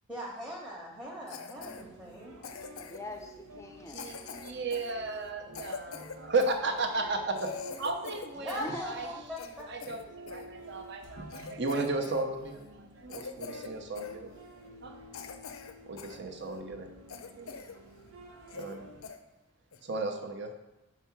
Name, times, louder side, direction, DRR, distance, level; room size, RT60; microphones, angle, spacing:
voice 1, 0.1-2.4 8.4-9.7, equal, 10° right, 0.9 m, -40 dB
Cough, 1.3-1.8 2.4-3.1 3.9-6.6 7.0-7.1 7.4-8.7 9.0-10.5 10.9-11.0 11.3-12.2 12.5-12.7 13.1-13.7 14.0-14.2 14.7-14.8 15.1-16.2 16.6-16.7 17.1-17.8 18.1-18.2 18.5-18.8 19.0-19.2 19.7-19.9, left 5 dB, 75° left, 0.5 m, -44 dB
sound 1, 1.6-19.1, right 1 dB, 85° right, 0.9 m, -52 dB
voice 2, 2.8-4.2 8.3-9.2, left 1 dB, 15° left, 0.5 m, -43 dB
voice 3, 3.9-7.2 7.8-9.1 9.6-14.3 14.8-15.0 15.9-16.9 17.4-17.5 18.5-18.9 19.8-20.5, right 3 dB, 50° right, 0.7 m, -34 dB
5.0 x 4.6 x 5.7 m
head